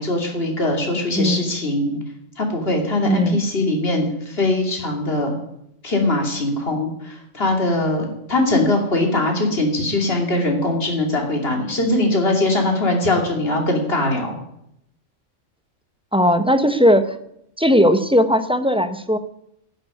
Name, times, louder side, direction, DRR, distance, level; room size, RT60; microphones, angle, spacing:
voice 1, 0.0-2.0 2.4-5.3 5.8-14.3, left 2 dB, 50° left, 2 dB, 3.0 m, -21 dB
voice 2, 3.0-3.4 16.1-17.2 17.6-19.2, equal, 5° right, 9 dB, 0.6 m, -17 dB
11.0 x 8.1 x 9.9 m, 0.77 s
omnidirectional pair, 1.3 m